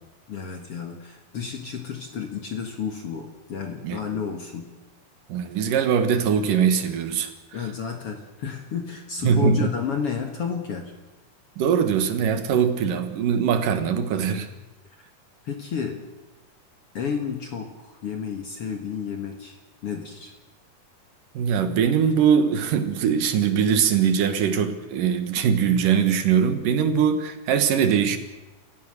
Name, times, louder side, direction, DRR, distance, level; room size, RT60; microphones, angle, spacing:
voice 1, 0.3-4.7 7.5-10.9 15.4-16.0 16.9-20.3, left 6 dB, 50° left, 4 dB, 2.4 m, -31 dB
voice 2, 5.3-7.3 9.2-9.7 11.6-14.5 21.3-28.2, right 7 dB, 75° right, 9 dB, 3.1 m, -21 dB
29.0 x 15.5 x 6.6 m, 1.1 s
omnidirectional pair, 3.8 m